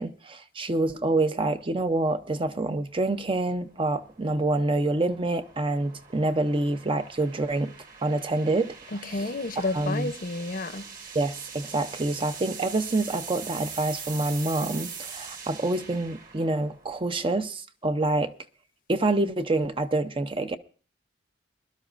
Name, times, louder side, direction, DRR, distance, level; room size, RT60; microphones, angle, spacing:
voice 1, 0.0-7.7 8.0-8.7 9.1-9.3 9.6-10.1 11.1-18.3 18.9-20.6, right 2 dB, 30° right, 0.6 m, -27 dB
Sweep (Centre to wide Pan), 1.0-17.3, right 6 dB, 45° right, 2.0 m, -43 dB
voice 2, 8.9-10.9, left 2 dB, 45° left, 0.7 m, -31 dB
22.0 x 12.0 x 2.5 m
head